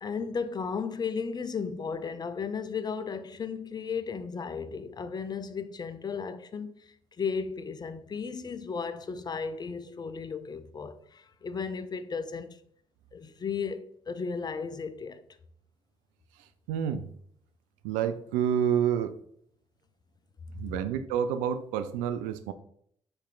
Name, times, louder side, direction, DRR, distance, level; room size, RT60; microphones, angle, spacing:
voice 1, 0.0-12.6 13.1-15.2, left 5 dB, 30° left, 0.5 m, -35 dB
voice 2, 16.7-17.1 17.8-19.2 20.5-22.5, right 9 dB, 75° right, 0.4 m, -28 dB
4.2 x 3.3 x 3.8 m
hypercardioid pair, 50°, 13 cm